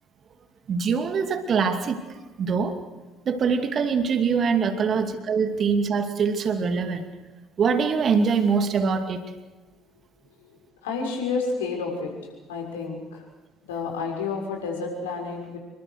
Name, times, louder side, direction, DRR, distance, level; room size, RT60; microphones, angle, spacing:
voice 1, 0.7-2.0 2.4-2.7 3.3-7.1 7.6-9.2, right 5 dB, 40° right, 8 dB, 2.5 m, -23 dB
voice 2, 10.8-12.1 12.5-13.2 13.7-15.6, left 4 dB, 70° left, 1 dB, 6.4 m, -30 dB
28.0 x 22.5 x 6.6 m, 1.2 s
figure-of-eight pair, 55°, 0 cm